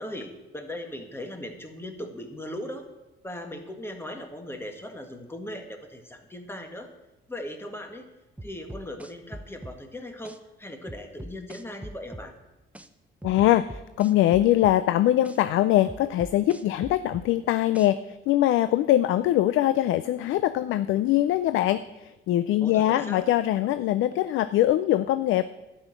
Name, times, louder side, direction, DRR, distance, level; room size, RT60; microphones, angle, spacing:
voice 1, 0.0-2.9 3.2-6.9 7.3-8.1 8.4-12.3 22.6-23.3, left 1 dB, 10° left, 4 dB, 1.7 m, -38 dB
sound 1, 8.4-9.8 10.2-10.4 10.9-12.3 12.7-12.9 13.2-14.8 15.2-15.4 15.9-17.3 17.7-17.9, right 1 dB, 5° right, 0.7 m, -41 dB
voice 2, 13.2-25.4, left 13 dB, 85° left, 13 dB, 0.4 m, -22 dB
11.5 x 6.3 x 8.9 m, 1.0 s
cardioid pair, 90°, 20 cm